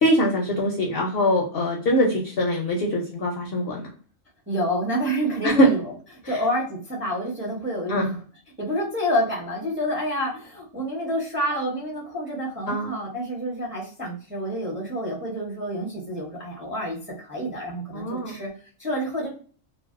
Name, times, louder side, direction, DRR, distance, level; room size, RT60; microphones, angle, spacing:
voice 1, 0.0-3.9 5.4-5.7 6.2-6.4 7.9-8.0 12.7-13.0 17.9-18.3, equal, 60° left, 0 dB, 0.6 m, -23 dB
voice 2, 4.5-5.9 6.3-8.2 8.6-18.5 18.8-19.3, equal, 15° right, -3 dB, 0.5 m, -28 dB
2.5 x 2.1 x 2.4 m, 0.42 s
omnidirectional pair, 1.3 m